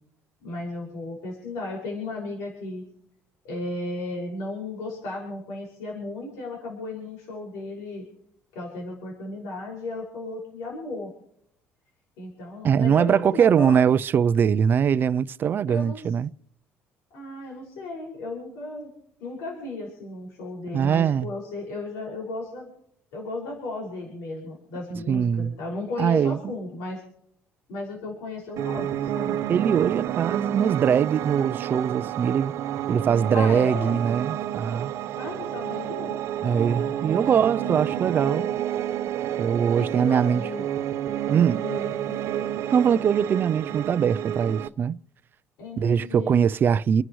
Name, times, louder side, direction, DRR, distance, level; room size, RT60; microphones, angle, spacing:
voice 1, 0.4-2.8 3.4-8.0 8.5-11.1 12.2-13.8 15.7-16.1 17.1-18.9 19.2-22.7 23.1-27.0 27.7-29.4 33.3-34.0 35.1-38.5 39.8-40.7 41.6-42.5 45.6-46.4, left 2 dB, 90° left, 6.0 m, -35 dB
voice 2, 12.6-16.3 20.7-21.3 24.9-25.6 26.0-26.4 29.5-32.5 32.9-34.9 36.4-38.5 39.4-40.4 41.3-41.6 42.7-45.0 45.8-47.0, right 7 dB, 40° right, 0.5 m, -22 dB
Piano, 28.6-44.7, right 11 dB, 65° right, 0.8 m, -30 dB
29.5 x 11.5 x 3.2 m
cardioid pair, 115°, 5 cm